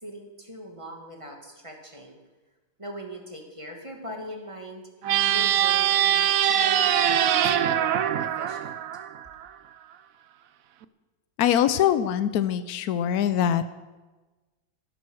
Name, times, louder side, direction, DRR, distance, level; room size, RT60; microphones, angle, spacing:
voice 1, 0.0-2.2 2.8-8.8, equal, 15° right, 1 dB, 2.1 m, -41 dB
sound 1, 5.0-9.5, right 10 dB, 80° right, 0.7 m, -23 dB
voice 2, 11.4-13.7, left 10 dB, 75° left, 12 dB, 0.8 m, -23 dB
14.0 x 11.5 x 6.4 m, 1.2 s
omnidirectional pair, 2.2 m